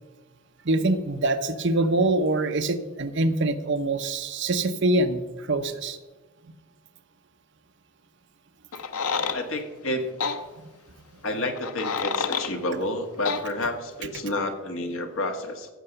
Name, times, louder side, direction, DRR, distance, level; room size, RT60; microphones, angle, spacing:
voice 1, 0.6-6.0, right 2 dB, 55° right, 9 dB, 0.8 m, -24 dB
sound 1, 8.7-9.4 10.2-10.4 11.5-12.5 13.2-13.4, left 5 dB, 85° left, 0.9 m, -28 dB
voice 2, 9.3-10.1 11.2-15.7, left 1 dB, 65° left, 5 dB, 1.6 m, -30 dB
15.0 x 6.8 x 6.9 m, 1.2 s
head